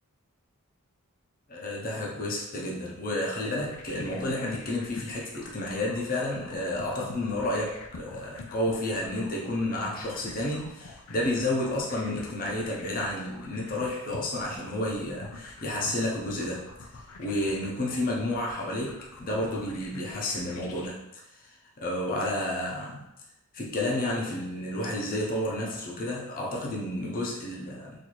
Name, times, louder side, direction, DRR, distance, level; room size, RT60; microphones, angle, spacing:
voice 1, 1.5-16.7 17.2-21.0 21.8-23.1 23.5-27.9, left 1 dB, 40° left, -3 dB, 0.7 m, -31 dB
sound 1, 3.4-20.9, left 3 dB, 85° left, 0.5 m, -45 dB
4.1 x 2.7 x 3.1 m, 0.86 s
head